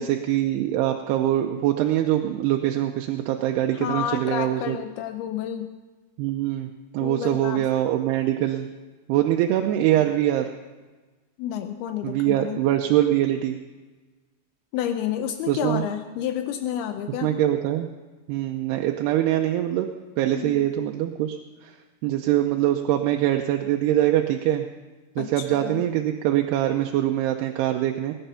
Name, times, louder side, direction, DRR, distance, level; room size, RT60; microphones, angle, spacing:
voice 1, 0.0-4.8 6.2-8.7 9.1-10.5 12.0-13.6 15.5-15.9 17.2-17.9 18.3-19.9 20.2-21.7 22.0-24.7 25.2-28.1, right 12 dB, 85° right, 4 dB, 2.8 m, -23 dB
voice 2, 3.8-5.8 7.0-7.7 8.6-8.7 11.4-12.6 14.7-17.4 20.3-20.7 25.2-25.8, left 10 dB, 80° left, 8 dB, 2.6 m, -30 dB
20.0 x 10.0 x 5.7 m, 1.3 s
omnidirectional pair, 4.6 m